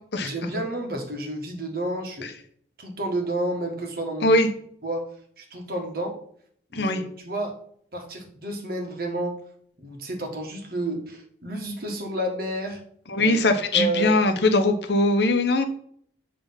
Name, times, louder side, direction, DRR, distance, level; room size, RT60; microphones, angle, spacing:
voice 1, 0.2-2.3 2.8-4.4 4.8-5.0 5.4-6.1 6.7-7.0 7.2-7.6 7.9-9.4 9.8-12.8 13.1-13.4 13.7-14.2, right 1 dB, 55° right, 2 dB, 1.5 m, -30 dB
voice 2, 6.7-7.0 13.1-15.6, left 2 dB, 70° left, 5 dB, 0.9 m, -21 dB
7.6 x 3.4 x 5.7 m, 0.62 s
head